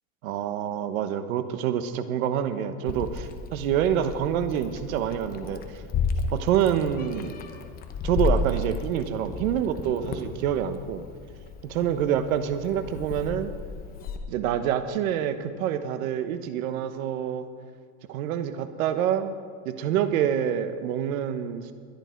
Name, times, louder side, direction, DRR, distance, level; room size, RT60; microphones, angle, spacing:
voice 1, 0.2-5.6 6.3-7.4 8.0-11.0 11.6-13.5 14.3-17.5 18.1-19.3 19.6-21.7, right 9 dB, 80° right, 10 dB, 1.4 m, -27 dB
Meow, 2.9-14.2, left 4 dB, 20° left, 0.9 m, -33 dB
21.0 x 11.0 x 4.6 m, 2.2 s
supercardioid pair, 170°, 41 cm